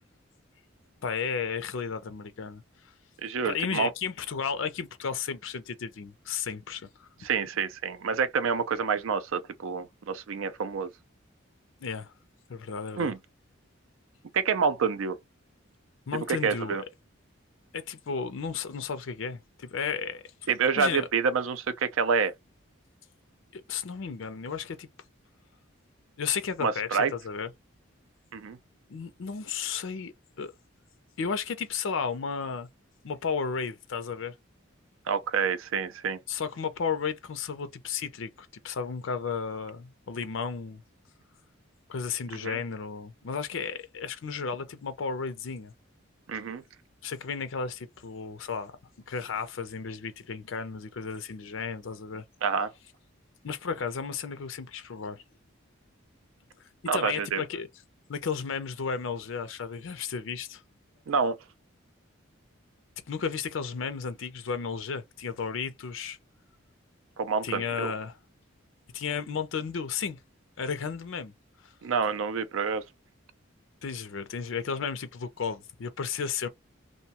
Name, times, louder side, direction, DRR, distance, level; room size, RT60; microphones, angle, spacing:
voice 1, 1.0-2.6 3.4-7.1 11.8-12.1 12.5-13.1 16.1-16.8 17.7-20.2 20.8-21.1 23.5-24.9 26.2-27.5 28.9-30.5 31.2-32.7 33.0-34.4 36.3-40.8 41.9-45.7 47.0-48.7 49.1-52.2 53.4-55.2 56.9-57.7 58.1-60.6 63.1-66.2 67.4-68.2 68.9-70.2 70.6-71.3 71.6-71.7 73.8-76.5, left 6 dB, 70° left, 0.5 m, -33 dB
voice 2, 3.2-3.9 7.2-10.9 13.0-13.2 14.3-15.2 16.1-16.8 20.5-22.3 26.6-27.1 28.3-28.6 35.1-36.2 42.4-42.6 46.3-46.6 52.4-52.7 56.9-57.4 61.1-61.4 67.2-67.9 71.8-72.8, right 5 dB, 75° right, 0.4 m, -28 dB
2.6 x 2.2 x 2.8 m
head